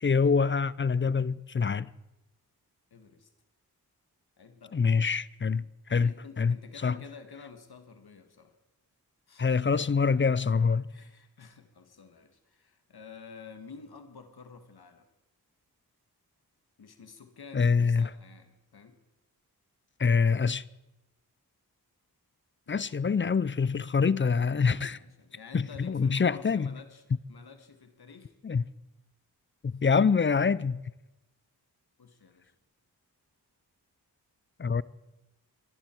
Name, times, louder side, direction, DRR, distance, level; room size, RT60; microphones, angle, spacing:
voice 1, 0.0-1.9 4.7-5.6 5.9-6.6 6.8-7.0 9.4-10.9 17.5-18.1 20.0-20.6 22.7-25.0 25.5-26.7 28.4-28.6 29.6-30.8 34.6-34.8, left 5 dB, 30° left, 0.5 m, -25 dB
voice 2, 2.9-3.3 4.4-4.8 6.0-8.6 9.3-9.7 10.9-15.1 16.8-19.0 22.7-23.0 24.8-27.0 27.3-28.3 32.0-32.5, left 5 dB, 70° left, 1.9 m, -50 dB
24.0 x 11.0 x 4.6 m
cardioid pair, 50°, 39 cm